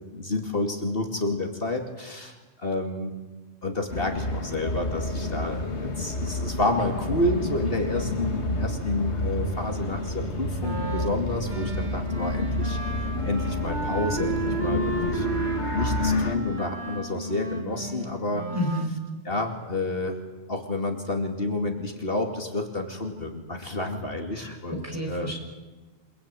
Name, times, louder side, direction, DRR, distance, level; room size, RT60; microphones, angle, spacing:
voice 1, 0.1-3.1 3.6-12.8 13.2-15.3 15.7-18.5 19.2-20.2 20.5-25.3, left 2 dB, 55° left, 3 dB, 2.9 m, -29 dB
sound 1, 3.9-16.4, left 2 dB, 80° left, 2.6 m, -29 dB
Wind instrument woodwind instrument, 10.6-18.9, right 3 dB, 45° right, 2.5 m, -33 dB
voice 2, 18.5-18.9 24.3-25.3, left 1 dB, 15° right, 0 dB, 6.8 m, -31 dB
28.5 x 20.5 x 9.1 m, 1.2 s
omnidirectional pair, 1.1 m